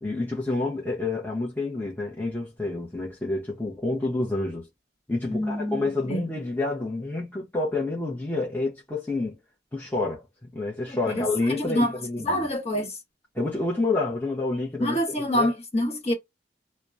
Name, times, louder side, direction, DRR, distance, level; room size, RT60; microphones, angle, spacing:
voice 1, 0.0-4.7 5.1-9.4 9.7-12.5 13.3-15.6, left 2 dB, 10° left, 0.7 m, -28 dB
voice 2, 5.3-6.2 10.9-11.9 12.2-12.9 14.8-16.1, left 1 dB, 35° left, 1.2 m, -27 dB
2.8 x 2.1 x 2.4 m
head